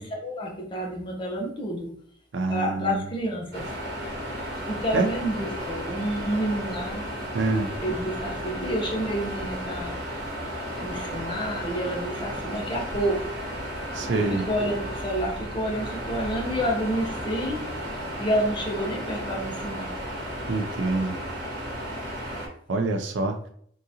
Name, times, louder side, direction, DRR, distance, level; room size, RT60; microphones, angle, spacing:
voice 1, 0.0-1.9 2.5-3.7 4.7-7.1 7.8-10.0 10.8-13.4 14.1-17.7 18.2-19.9, equal, 25° left, -1 dB, 0.8 m, -29 dB
voice 2, 2.3-3.0 4.9-5.1 7.3-7.7 13.9-14.5 20.5-21.2 22.7-23.4, right 3 dB, 80° right, 6 dB, 0.5 m, -26 dB
sound 1, 3.5-22.5, equal, 55° right, 1.2 m, -34 dB
3.8 x 2.5 x 2.7 m, 0.62 s
head